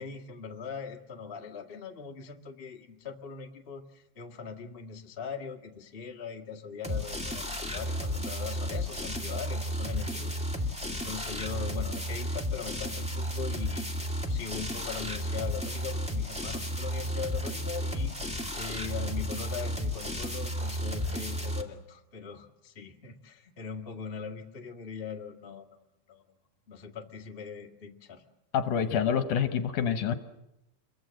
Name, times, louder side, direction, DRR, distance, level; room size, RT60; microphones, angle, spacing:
voice 1, 0.0-25.7 26.1-26.2 26.7-28.2, left 6 dB, 35° left, 2 dB, 0.8 m, -41 dB
sound 1, 6.8-21.6, equal, 5° right, 0.5 m, -33 dB
voice 2, 28.5-30.2, left 8 dB, 70° left, 9 dB, 2.2 m, -27 dB
28.0 x 22.5 x 7.6 m, 0.90 s
omnidirectional pair, 4.3 m